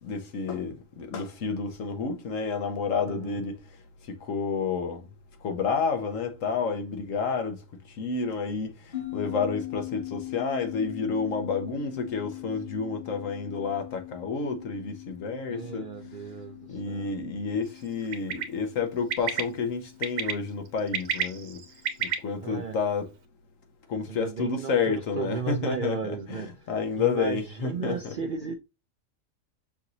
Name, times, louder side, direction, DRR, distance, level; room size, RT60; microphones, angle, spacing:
voice 1, 0.0-3.6 4.1-5.0 5.4-7.6 7.9-15.9 16.7-21.6 22.0-23.1 23.9-28.2, left 5 dB, 75° left, 1.3 m, -30 dB
voice 2, 3.0-3.4 15.5-17.1 22.4-22.8 24.1-28.5, right 6 dB, 60° right, 0.5 m, -35 dB
sound 1, 8.9-21.7, left 17 dB, 45° left, 1.3 m, -42 dB
Bird, 18.1-18.4 19.1-19.4 20.0-20.3 20.8-22.1, right 8 dB, 85° right, 1.2 m, -28 dB
5.7 x 2.7 x 2.8 m
omnidirectional pair, 1.4 m